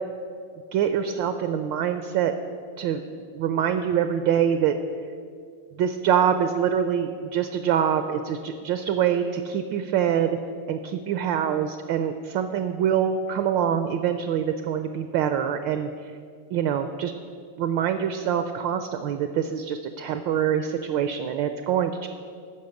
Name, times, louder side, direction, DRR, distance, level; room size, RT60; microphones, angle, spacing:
voice 1, 0.7-2.3 2.8-3.0 3.3-4.7 5.8-10.4 10.7-15.9 16.5-17.1 17.6-22.1, right 8 dB, 75° right, 9 dB, 1.1 m, -25 dB
14.5 x 5.5 x 6.9 m, 2.2 s
omnidirectional pair, 2.4 m